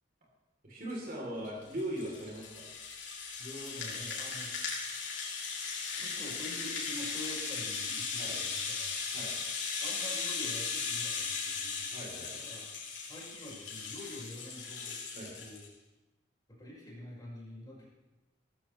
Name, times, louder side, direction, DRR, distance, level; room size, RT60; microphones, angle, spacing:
voice 1, 0.6-2.7 8.2-8.4 9.1-9.3 11.9-12.3 15.1-15.3, right 1 dB, 50° right, -3 dB, 3.8 m, -39 dB
Rattle (instrument), 1.4-15.7, left 5 dB, 70° left, 3.7 m, -37 dB
voice 2, 3.4-4.5 6.0-8.9 9.8-11.8 12.3-12.7 13.0-15.0 15.4-15.7 16.6-17.9, left 1 dB, 20° left, -6 dB, 5.5 m, -46 dB
18.0 x 14.0 x 3.4 m, 1.0 s
head